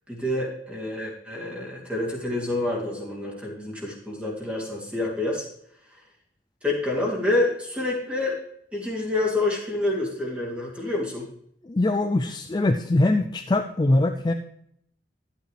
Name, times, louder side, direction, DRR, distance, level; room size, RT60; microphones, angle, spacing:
voice 1, 0.1-5.5 5.9-6.0 6.6-8.4 8.7-11.3, left 2 dB, 5° right, -3 dB, 2.8 m, -27 dB
voice 2, 11.6-14.3, left 2 dB, 20° left, 7 dB, 0.4 m, -22 dB
11.5 x 8.9 x 3.3 m, 0.69 s
head